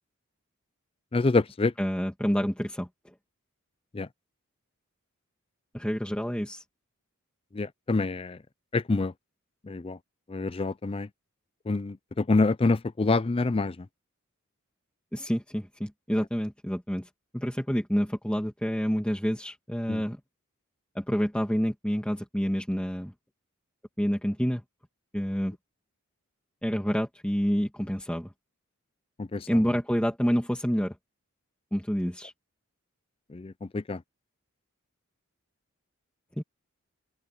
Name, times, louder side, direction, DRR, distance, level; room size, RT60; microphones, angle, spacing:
voice 1, 1.1-1.7 3.9-4.1 7.5-8.4 8.7-9.1 9.7-10.0 10.3-11.1 11.7-13.8 19.9-20.0 29.2-29.5 33.3-34.0, left 3 dB, 25° left, 0.4 m, -26 dB
voice 2, 1.8-2.9 5.7-6.6 15.1-17.1 17.3-20.2 21.0-23.1 24.0-24.6 25.1-25.6 26.6-28.3 29.5-30.9 31.7-32.3 36.4-36.5, equal, 5° left, 2.0 m, -28 dB
open air
head